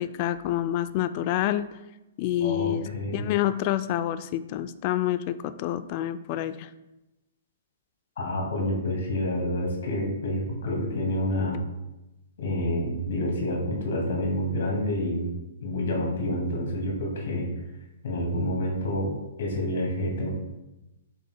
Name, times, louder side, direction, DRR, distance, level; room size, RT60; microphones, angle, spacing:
voice 1, 0.0-1.7 2.2-6.7, left 12 dB, 40° left, 12 dB, 0.4 m, -28 dB
voice 2, 2.4-3.2 8.2-11.6 12.4-15.4 15.6-17.5 18.0-19.1 19.4-20.3, left 1 dB, 60° left, -1 dB, 2.3 m, -28 dB
9.4 x 5.5 x 2.3 m, 0.98 s
figure-of-eight pair, 120°, 0 cm